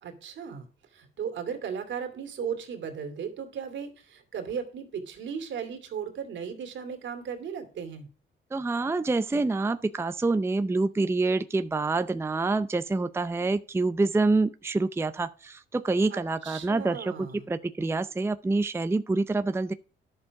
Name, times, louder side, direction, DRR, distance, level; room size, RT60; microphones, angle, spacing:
voice 1, 0.0-8.1 16.1-17.4, right 7 dB, 70° right, 2.6 m, -36 dB
voice 2, 8.5-19.7, right 3 dB, 10° right, 0.5 m, -27 dB
11.0 x 7.1 x 4.8 m
cardioid pair, 90°, 20 cm